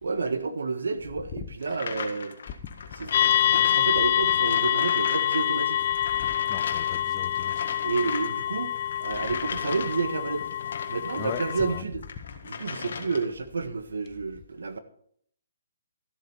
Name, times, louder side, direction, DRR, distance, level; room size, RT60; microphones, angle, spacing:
voice 1, 0.0-2.3 3.0-5.8 7.8-8.7 9.0-10.5 10.9-12.0 12.4-14.8, right 4 dB, 85° right, 1.5 m, -30 dB
sound 1, 1.6-11.6 12.0-13.4, left 5 dB, 65° left, 1.6 m, -38 dB
sound 2, 3.1-11.8, left 11 dB, 50° left, 0.4 m, -26 dB
voice 2, 6.2-7.5 11.2-11.8, left 10 dB, 30° left, 1.0 m, -38 dB
13.5 x 7.6 x 5.5 m
hypercardioid pair, 150°, 0 cm